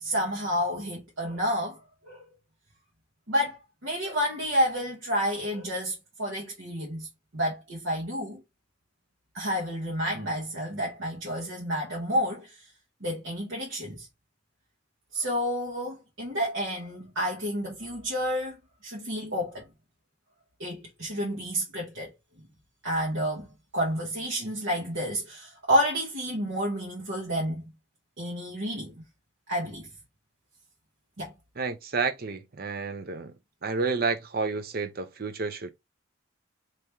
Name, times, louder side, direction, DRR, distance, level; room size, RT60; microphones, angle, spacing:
voice 1, 0.0-1.8 2.0-2.2 3.3-7.1 7.3-8.4 9.3-12.6 13.0-14.1 15.1-18.6 18.8-19.7 20.6-22.1 22.8-23.5 23.7-27.7 28.2-28.9 29.5-29.9 31.2-31.3, equal, 65° right, 1.3 m, -30 dB
voice 2, 31.6-33.3 33.6-35.7, right 4 dB, 45° right, 0.6 m, -30 dB
3.5 x 3.0 x 2.9 m
head